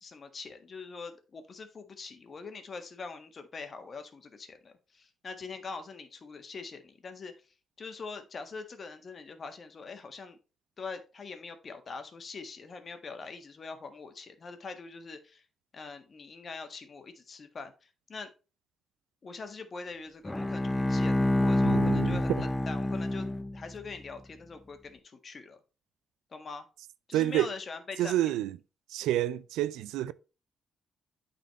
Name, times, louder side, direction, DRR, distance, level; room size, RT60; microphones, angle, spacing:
voice 1, 0.0-7.3 7.8-10.4 10.8-15.4 15.7-18.3 19.2-23.3 23.5-25.6 26.3-26.7 27.1-28.3, left 4 dB, 50° left, 1.6 m, -43 dB
Bowed string instrument, 20.2-23.8, left 1 dB, 15° left, 0.7 m, -27 dB
voice 2, 21.6-22.4 27.1-27.5 28.0-28.6 28.9-30.1, right 13 dB, 85° right, 0.4 m, -29 dB
9.1 x 4.2 x 4.2 m
supercardioid pair, 50°, 0 cm